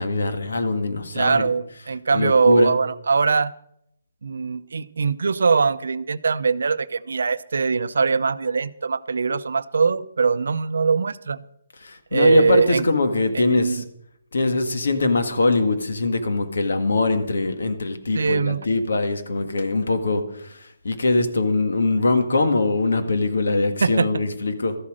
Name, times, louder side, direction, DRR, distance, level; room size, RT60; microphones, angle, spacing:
voice 1, 0.0-1.5 2.1-2.7 11.8-13.8 14.3-24.8, left 2 dB, 80° left, 7 dB, 1.8 m, -22 dB
voice 2, 1.1-3.5 4.2-11.4 12.1-12.8 13.3-13.8 18.1-18.6 23.8-24.1, right 5 dB, 75° right, 15 dB, 0.6 m, -21 dB
13.5 x 8.5 x 6.3 m, 0.75 s
hypercardioid pair, 170°, 0 cm